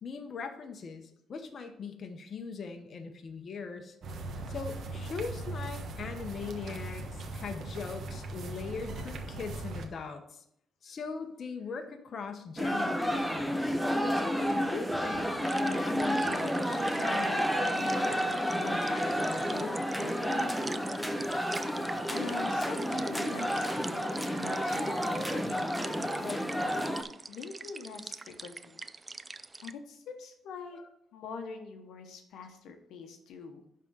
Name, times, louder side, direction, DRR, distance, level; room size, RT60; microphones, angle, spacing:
voice 1, 0.0-3.9 4.5-10.4 10.8-13.7 14.1-15.3 15.6-20.6 21.7-22.0 30.7-30.8, left 5 dB, 50° left, 5 dB, 1.0 m, -40 dB
sound 1, 4.0-9.9, right 2 dB, 65° right, 1.2 m, -39 dB
sound 2, 12.6-27.0, equal, ahead, 0.9 m, -30 dB
sound 3, 15.4-29.7, right 3 dB, 25° right, 0.4 m, -45 dB
voice 2, 22.1-26.4 27.3-28.8 29.6-30.8 31.1-33.6, left 5 dB, 80° left, 5 dB, 1.0 m, -44 dB
11.0 x 3.7 x 5.5 m, 0.76 s
cardioid pair, 90°, 0 cm